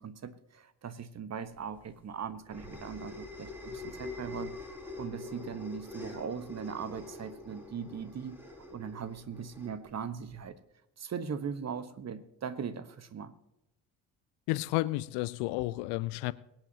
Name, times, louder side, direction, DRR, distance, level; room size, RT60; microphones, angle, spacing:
voice 1, 0.0-10.6 11.0-13.3, right 6 dB, 35° right, 1.2 m, -40 dB
sound 1, 1.6-10.4, left 3 dB, 5° right, 3.4 m, -45 dB
voice 2, 14.5-16.3, left 19 dB, 60° left, 0.7 m, -31 dB
23.0 x 8.8 x 2.8 m
figure-of-eight pair, 50°, 48 cm